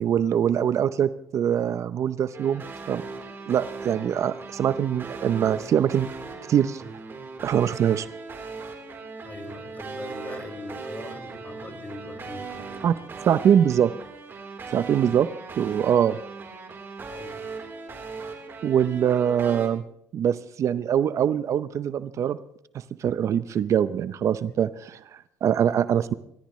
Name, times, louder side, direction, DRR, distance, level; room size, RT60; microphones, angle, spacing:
voice 1, 0.0-3.0 3.5-6.1 6.5-6.8 7.4-8.1 12.8-12.9 13.3-13.9 14.7-15.3 15.6-16.2 18.6-19.8 20.1-22.4 23.0-26.1, right 9 dB, 55° right, 14 dB, 0.7 m, -23 dB
sound 1, 2.3-19.7, right 4 dB, 40° right, 3.7 m, -39 dB
voice 2, 9.2-12.9 17.1-17.4, left 2 dB, 25° left, 2 dB, 5.9 m, -41 dB
28.5 x 14.0 x 3.2 m, 0.74 s
cardioid pair, 100°, 6 cm